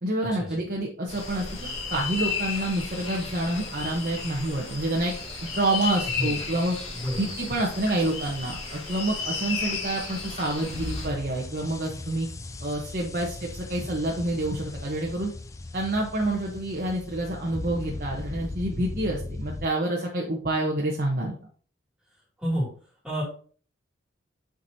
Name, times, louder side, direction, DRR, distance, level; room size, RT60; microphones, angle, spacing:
voice 1, 0.0-1.4 1.9-5.1 5.4-6.7 7.2-12.3 12.6-15.3 15.7-21.4, right 1 dB, 45° right, -2 dB, 1.1 m, -28 dB
sound 1, 1.1-11.1, left 4 dB, 30° left, 2.6 m, -34 dB
voice 2, 6.9-7.3 13.8-13.9 22.4-22.7 23.0-23.2, equal, 5° right, -5 dB, 2.8 m, -29 dB
sound 2, 10.7-19.7, left 2 dB, 15° left, 0.3 m, -38 dB
8.0 x 5.2 x 2.8 m, 0.43 s
head